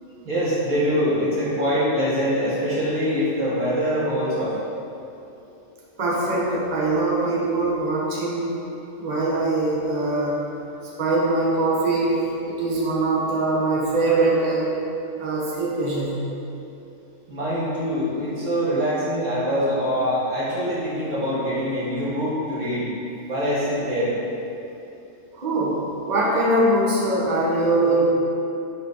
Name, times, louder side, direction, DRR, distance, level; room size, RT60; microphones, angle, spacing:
voice 1, 0.2-4.5 17.3-22.9 23.3-24.1, equal, 85° right, -9 dB, 2.2 m, -24 dB
voice 2, 6.0-8.5 9.0-10.4 11.0-12.1 12.5-14.7 15.2-16.2 25.3-28.1, right 2 dB, 35° right, -5 dB, 1.1 m, -22 dB
6.8 x 4.2 x 5.4 m, 2.8 s
omnidirectional pair, 1.3 m